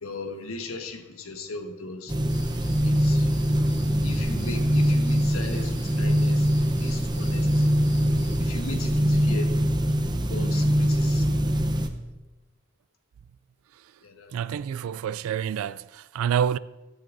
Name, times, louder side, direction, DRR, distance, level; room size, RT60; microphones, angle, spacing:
voice 1, 0.0-2.1 2.8-3.3 4.0-7.7 8.4-9.5 10.3-11.4 14.0-14.4, left 2 dB, 85° left, 1.4 m, -37 dB
sound 1, 2.1-11.9, equal, 20° right, 0.7 m, -23 dB
sound 2, 2.3-8.4, left 1 dB, 15° left, 4.0 m, -41 dB
voice 2, 14.3-16.6, right 8 dB, 80° right, 0.3 m, -27 dB
15.5 x 13.5 x 2.6 m
head